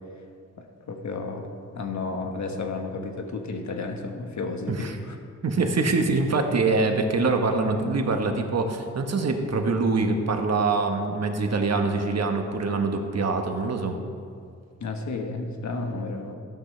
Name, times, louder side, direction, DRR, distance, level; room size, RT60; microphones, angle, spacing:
voice 1, 0.6-1.5 1.7-5.2 14.8-16.4, left 3 dB, 60° left, 4 dB, 1.4 m, -32 dB
voice 2, 5.4-14.0, right 3 dB, 55° right, 4 dB, 1.3 m, -24 dB
13.0 x 12.0 x 3.3 m, 2.2 s
cardioid pair, 70°, 32 cm